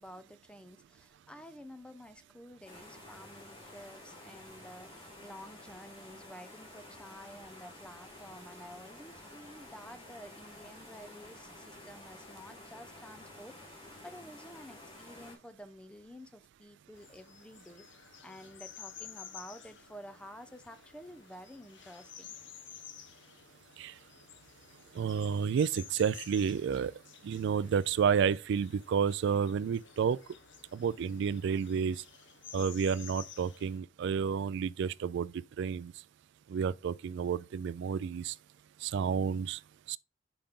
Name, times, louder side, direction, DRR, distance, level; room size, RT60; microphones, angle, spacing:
voice 1, 0.0-22.3, equal, 5° left, 0.5 m, -51 dB
sound 1, 2.6-15.3, left 1 dB, 25° left, 2.7 m, -51 dB
sound 2, 16.9-33.8, left 8 dB, 65° left, 0.8 m, -52 dB
voice 2, 24.9-26.9 27.2-30.2 30.7-32.0 32.5-35.9 36.5-38.4 38.8-39.6 39.9-40.0, right 7 dB, 60° right, 0.3 m, -30 dB
5.8 x 5.1 x 3.6 m
head